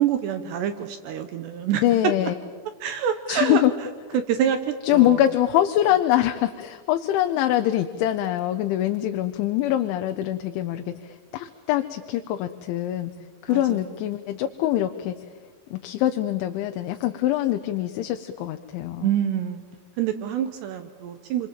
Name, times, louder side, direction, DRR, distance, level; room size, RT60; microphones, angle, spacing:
voice 1, 0.0-1.8 2.8-3.6 4.1-5.2 13.5-13.8 19.0-19.6 20.0-21.5, right 9 dB, 75° right, 8 dB, 3.0 m, -26 dB
voice 2, 1.8-2.3 3.3-3.7 4.8-13.1 13.4-15.1 15.7-19.1, left 13 dB, 80° left, 7 dB, 3.2 m, -24 dB
29.0 x 23.5 x 7.6 m, 1.5 s
omnidirectional pair, 5.4 m